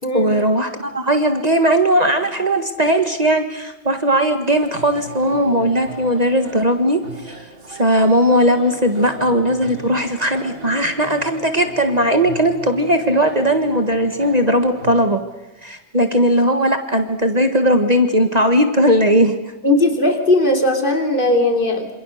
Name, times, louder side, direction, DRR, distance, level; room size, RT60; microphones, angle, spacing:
voice 1, 0.1-7.4 7.7-15.2 15.6-19.3, equal, 35° right, 6 dB, 1.7 m, -18 dB
sound 1, 4.6-15.2, right 2 dB, 60° right, 2.3 m, -38 dB
voice 2, 19.6-22.0, left 2 dB, 50° left, 3 dB, 3.4 m, -17 dB
27.5 x 27.0 x 6.6 m, 1.0 s
omnidirectional pair, 1.1 m